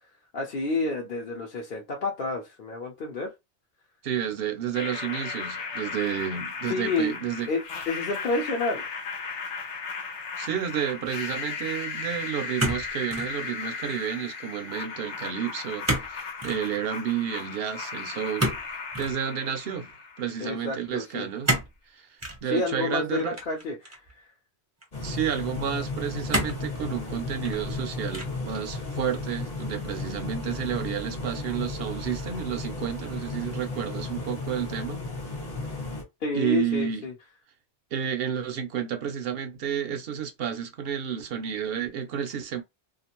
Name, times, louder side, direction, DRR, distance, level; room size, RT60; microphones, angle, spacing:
voice 1, 0.3-3.3 6.7-7.1 7.5-8.8 20.4-21.3 22.4-24.0 36.2-37.1, left 3 dB, 55° left, 0.8 m, -29 dB
voice 2, 4.0-7.5 10.4-18.5 19.0-19.9 20.2-21.5 21.9-22.1 22.4-23.3 25.0-35.1 36.3-37.1 37.9-42.6, right 8 dB, 65° right, 0.8 m, -31 dB
sound 1, 4.7-20.7, left 5 dB, 90° left, 1.0 m, -36 dB
sound 2, 12.6-13.3 13.7-14.1 15.8-16.1 16.4-16.6 18.4-19.2 21.4-21.8 22.2-22.4 23.3-24.1 24.8-24.9 26.3-26.7 27.3-27.8 28.1-28.5, right 1 dB, 20° right, 0.6 m, -29 dB
sound 3, 24.9-36.0, left 3 dB, 40° left, 1.2 m, -34 dB
2.5 x 2.4 x 2.9 m
omnidirectional pair, 1.1 m